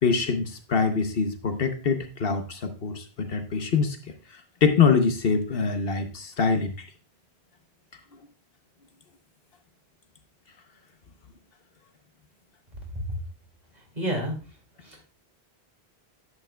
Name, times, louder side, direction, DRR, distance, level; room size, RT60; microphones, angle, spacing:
voice 1, 0.0-4.0 4.3-6.7, left 5 dB, 65° left, 7 dB, 1.0 m, -24 dB
voice 2, 14.0-14.3 14.8-15.0, equal, 40° right, 0 dB, 2.6 m, -29 dB
9.7 x 8.2 x 2.2 m, 0.35 s
omnidirectional pair, 1.1 m